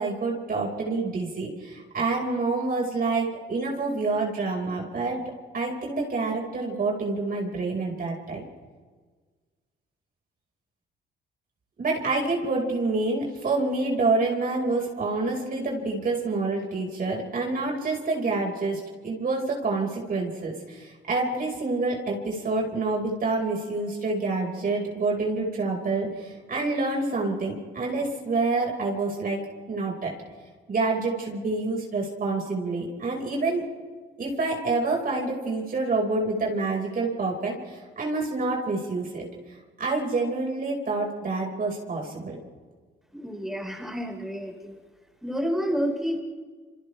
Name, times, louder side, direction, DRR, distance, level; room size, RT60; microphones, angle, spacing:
voice 1, 0.0-5.2 5.5-8.4 11.8-29.4 29.7-30.1 30.7-33.6 34.2-39.2 39.8-42.4, right 3 dB, 45° right, -1 dB, 5.2 m, -27 dB
voice 2, 43.1-44.8 45.2-46.2, equal, ahead, 0 dB, 4.9 m, -29 dB
28.5 x 27.0 x 3.4 m, 1.5 s
cardioid pair, 90°, 20 cm